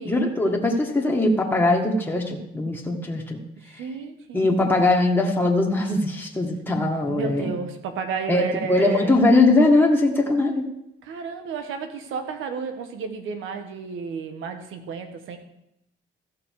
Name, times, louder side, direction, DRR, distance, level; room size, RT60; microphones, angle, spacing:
voice 1, 0.1-3.4 4.3-7.5 8.3-10.7, left 2 dB, 10° left, -1 dB, 1.9 m, -21 dB
voice 2, 3.6-4.5 7.1-9.1 11.0-15.4, right 5 dB, 90° right, 7 dB, 1.4 m, -32 dB
15.0 x 6.0 x 4.8 m, 0.82 s
cardioid pair, 90°, 20 cm